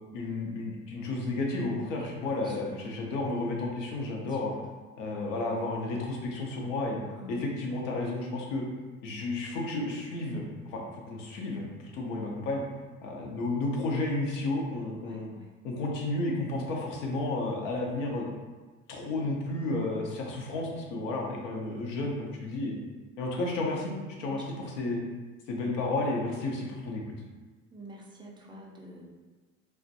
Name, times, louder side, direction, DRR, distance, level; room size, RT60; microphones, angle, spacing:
voice 1, 0.1-4.5 5.0-7.0 7.3-8.6 9.0-10.4 10.7-11.7 11.9-12.6 13.0-15.3 15.6-18.3 18.9-22.7 23.2-25.0 25.5-27.0, left 2 dB, 70° left, 0 dB, 0.7 m, -32 dB
voice 2, 7.0-7.4 14.9-15.5 23.2-23.5 24.3-24.9 27.7-29.0, right 1 dB, 15° right, -2 dB, 0.4 m, -47 dB
2.4 x 2.2 x 2.6 m, 1.3 s
hypercardioid pair, 75°, 38 cm